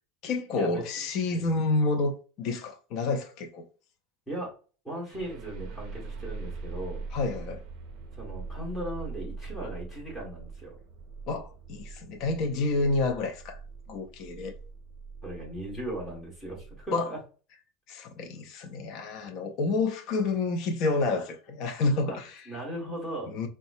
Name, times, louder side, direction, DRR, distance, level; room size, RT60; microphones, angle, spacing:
voice 1, 0.2-3.7 7.1-7.6 11.3-13.6 13.9-14.5 16.9-17.1 17.9-22.4 23.3-23.5, left 3 dB, 45° left, 0.6 m, -29 dB
voice 2, 4.8-7.0 8.2-10.8 15.2-17.2 22.1-22.2 22.5-23.3, right 1 dB, 5° left, 1.7 m, -37 dB
sound 1, 5.1-16.8, right 4 dB, 50° right, 0.5 m, -42 dB
4.1 x 2.2 x 2.7 m
supercardioid pair, 155°, 0 cm